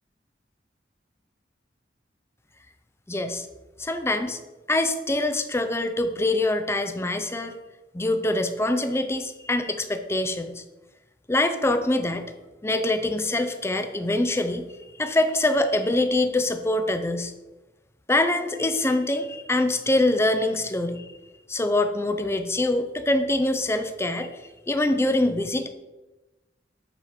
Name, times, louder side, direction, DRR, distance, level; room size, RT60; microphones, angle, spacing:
voice 1, 3.1-3.5 3.8-4.4 4.7-7.6 7.9-10.6 11.3-12.3 12.6-14.6 15.0-17.3 18.1-21.1 21.5-24.3 24.7-25.7, left 2 dB, 15° left, 7 dB, 0.6 m, -24 dB
9.0 x 4.3 x 4.9 m, 1.1 s
head